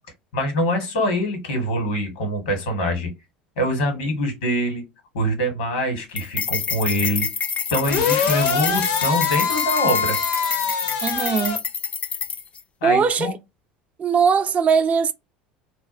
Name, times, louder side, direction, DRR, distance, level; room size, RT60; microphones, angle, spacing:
voice 1, 0.3-3.1 3.6-4.8 5.1-7.3 7.7-10.2 12.8-13.3, equal, 80° left, 1.3 m, -24 dB
sound 1, 6.2-12.6, left 6 dB, 30° left, 0.3 m, -27 dB
sound 2, 7.8-11.6, left 6 dB, 65° left, 0.6 m, -24 dB
voice 2, 11.0-11.6 12.8-13.3 14.0-15.1, right 6 dB, 35° right, 0.4 m, -20 dB
2.4 x 2.2 x 2.5 m
hypercardioid pair, 85°, 4 cm